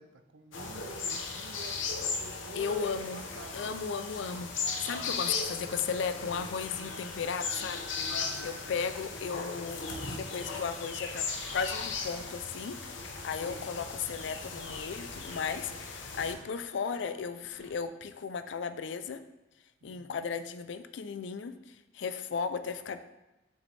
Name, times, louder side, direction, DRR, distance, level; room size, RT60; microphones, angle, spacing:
voice 1, 0.0-3.8 9.9-10.2 13.4-13.8 19.8-20.2, right 3 dB, 80° right, 8 dB, 0.5 m, -49 dB
sound 1, 0.5-16.3, left 4 dB, 90° left, 0.8 m, -37 dB
voice 2, 2.6-3.2 3.5-4.5 4.8-7.8 8.4-9.8 10.1-11.3 11.5-19.2 19.8-23.0, left 6 dB, 70° left, 11 dB, 0.4 m, -35 dB
sound 2, 11.3-17.7, right 1 dB, 50° right, 2.1 m, -56 dB
6.4 x 5.0 x 3.3 m, 0.99 s
head